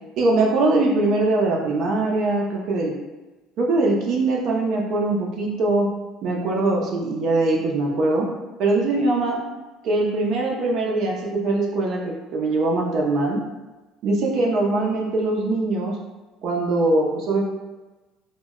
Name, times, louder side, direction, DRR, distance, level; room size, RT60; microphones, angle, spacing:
voice 1, 0.2-2.9 3.6-5.9 6.2-8.3 8.6-9.4 9.8-13.4 14.0-16.0 16.4-17.4, right 2 dB, 55° right, -1 dB, 0.5 m, -22 dB
2.1 x 2.0 x 3.5 m, 1.1 s
cardioid pair, 140°, 0 cm